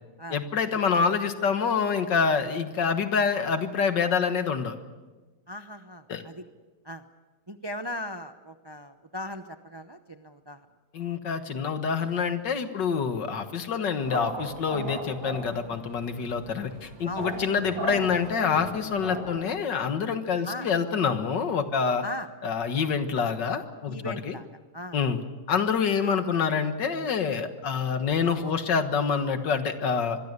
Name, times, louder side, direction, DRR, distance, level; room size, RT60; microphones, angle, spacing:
voice 1, 0.3-4.8 6.1-6.2 10.9-22.0 22.4-24.4 24.9-25.2 25.5-30.2, left 6 dB, 70° left, 8 dB, 2.1 m, -26 dB
voice 2, 5.5-6.4 6.8-7.0 7.5-10.6 17.1-17.3 20.4-20.7 22.0-22.3 23.9-24.5 24.7-25.0, left 1 dB, 25° right, 8 dB, 0.5 m, -38 dB
sound 1, 14.0-19.4, right 2 dB, 90° right, 3.4 m, -37 dB
26.0 x 22.0 x 6.8 m, 1.2 s
omnidirectional pair, 2.0 m